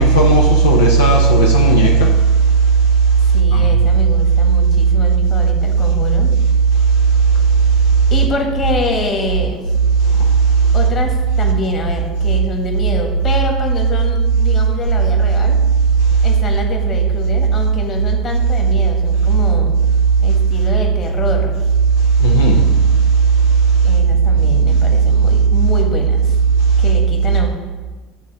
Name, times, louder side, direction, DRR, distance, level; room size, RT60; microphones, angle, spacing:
voice 1, 0.0-2.1 3.5-3.6 22.2-22.6, right 3 dB, 85° left, 0.7 m, -12 dB
voice 2, 3.3-6.3 8.1-9.6 10.7-15.6 16.2-19.7 20.2-21.7 23.8-26.4 26.8-27.5, left 3 dB, 40° left, 1.6 m, -25 dB
9.1 x 3.7 x 5.5 m
hypercardioid pair, 65°, 0 cm